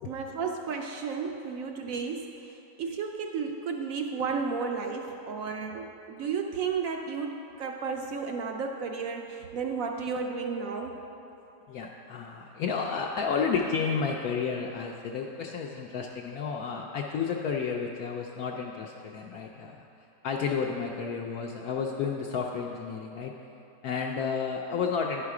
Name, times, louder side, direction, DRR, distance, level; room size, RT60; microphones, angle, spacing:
voice 1, 0.1-11.0, right 5 dB, 70° right, 3 dB, 0.8 m, -33 dB
voice 2, 11.7-19.8 20.2-23.3 23.8-25.3, left 5 dB, 70° left, 0 dB, 0.9 m, -31 dB
10.0 x 5.7 x 4.8 m, 2.9 s
omnidirectional pair, 1.8 m